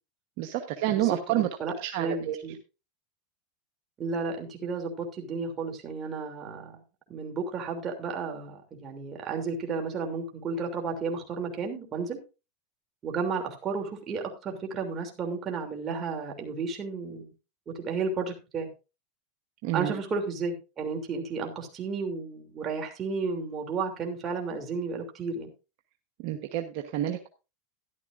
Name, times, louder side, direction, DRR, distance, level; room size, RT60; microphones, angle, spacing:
voice 1, 0.4-1.5 1.8-2.4 19.6-19.9 26.2-27.3, right 13 dB, 65° right, 5 dB, 1.1 m, -29 dB
voice 2, 1.6-2.5 4.0-6.8 7.1-12.2 13.0-17.3 17.8-18.7 19.7-25.5, right 4 dB, 30° right, 3 dB, 3.0 m, -33 dB
13.0 x 11.0 x 2.6 m, 0.29 s
supercardioid pair, 115°, 0 cm